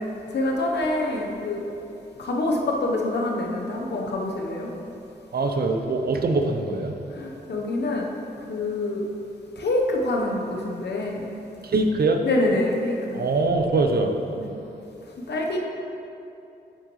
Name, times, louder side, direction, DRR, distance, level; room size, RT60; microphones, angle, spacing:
voice 1, 0.3-1.6 2.2-4.7 7.1-8.1 8.5-9.0 9.6-11.3 12.2-13.2 14.4-14.5 15.2-15.6, left 2 dB, 75° left, -1 dB, 1.0 m, -26 dB
voice 2, 5.3-7.0 11.6-12.2 13.1-14.2, right 3 dB, 65° right, 5 dB, 0.8 m, -23 dB
8.6 x 7.7 x 3.2 m, 2.8 s
cardioid pair, 50°, 18 cm